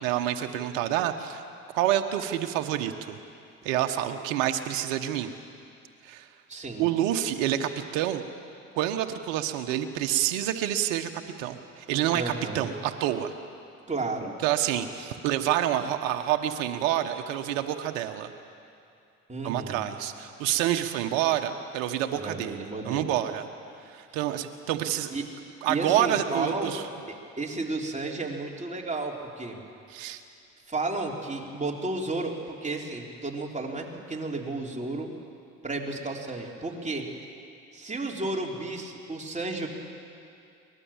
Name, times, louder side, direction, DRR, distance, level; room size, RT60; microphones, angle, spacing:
voice 1, 0.0-1.4 1.7-3.2 3.6-5.3 6.0-6.3 6.8-8.2 8.7-11.1 11.4-13.3 14.4-18.3 19.4-23.5 23.9-25.1 25.6-26.8 29.9-30.2, right 12 dB, 75° right, 6 dB, 1.3 m, -28 dB
voice 2, 6.5-6.9 12.1-12.7 13.9-14.3 19.3-19.9 22.2-23.1 25.1-25.2 25.7-26.7 27.1-29.6 30.7-35.1 35.6-37.1 37.7-39.7, right 2 dB, 20° right, -1 dB, 3.7 m, -32 dB
23.5 x 19.0 x 7.4 m, 2.5 s
hypercardioid pair, 65°, 38 cm